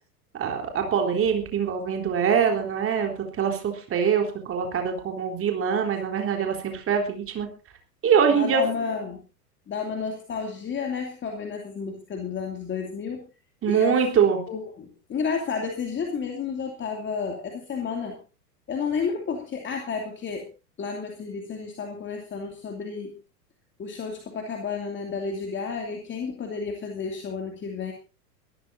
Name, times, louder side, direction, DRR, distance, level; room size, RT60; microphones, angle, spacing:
voice 1, 0.3-7.5 8.0-8.6 13.6-14.4, right 7 dB, 25° right, 3 dB, 3.8 m, -24 dB
voice 2, 8.3-9.2 9.7-13.2 13.6-18.2 18.7-20.5 20.8-23.1 23.8-27.9, left 5 dB, 25° left, 3 dB, 2.7 m, -31 dB
23.0 x 14.0 x 2.7 m, 0.32 s
figure-of-eight pair, 95°, 48 cm